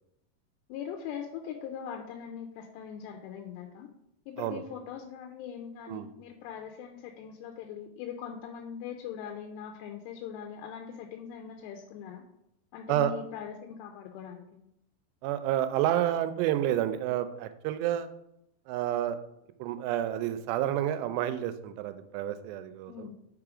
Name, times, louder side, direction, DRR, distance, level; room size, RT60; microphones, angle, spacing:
voice 1, 0.7-3.9 4.3-12.2 12.7-14.5 22.9-23.1, left 8 dB, 90° left, 3 dB, 2.8 m, -41 dB
voice 2, 15.2-18.1 18.7-19.2 19.6-23.1, right 12 dB, 90° right, 10 dB, 2.7 m, -29 dB
5.5 x 4.8 x 4.8 m, 0.83 s
omnidirectional pair, 4.8 m